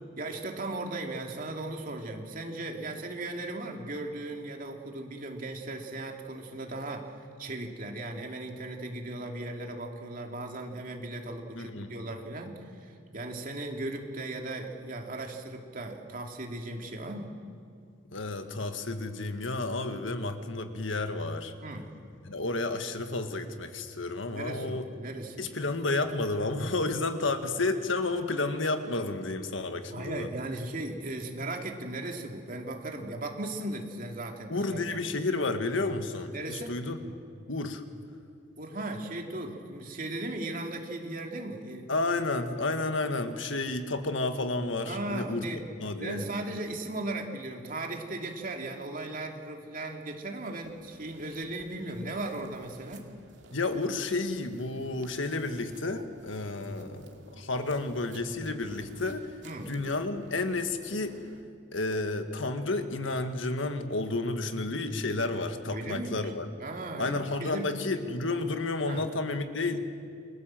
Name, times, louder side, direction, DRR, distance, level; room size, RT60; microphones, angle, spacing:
voice 1, 0.2-17.3 21.6-21.9 24.3-25.5 29.9-35.1 36.3-36.8 38.6-41.9 44.8-45.6 45.9-53.1 59.4-59.7 65.7-66.3 66.6-67.8 68.8-69.1, right 2 dB, 45° right, 2 dB, 2.8 m, -37 dB
voice 2, 11.6-11.9 18.1-21.5 22.3-24.9 25.4-30.3 34.5-37.2 37.5-37.8 41.9-45.4 45.8-46.2 53.5-59.3 59.7-61.2 61.7-66.5 67.0-69.8, left 2 dB, 85° left, 7 dB, 1.7 m, -31 dB
sound 1, 50.6-61.4, right 2 dB, 70° right, 2.5 m, -54 dB
29.0 x 22.0 x 7.7 m, 2.3 s
head